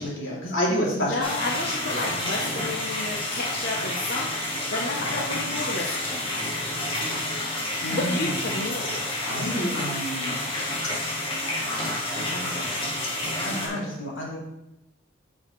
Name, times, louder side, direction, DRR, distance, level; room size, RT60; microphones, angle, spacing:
voice 1, 0.0-1.7 7.8-8.5 9.3-10.4 12.3-12.7 13.4-14.4, equal, 75° left, -4 dB, 2.7 m, -29 dB
voice 2, 0.9-4.3 4.7-6.4 7.9-9.0, left 2 dB, 50° left, -1 dB, 0.8 m, -31 dB
sound 1, 1.2-13.7, left 1 dB, 25° left, 1.8 m, -29 dB
9.4 x 6.4 x 3.2 m, 0.87 s
head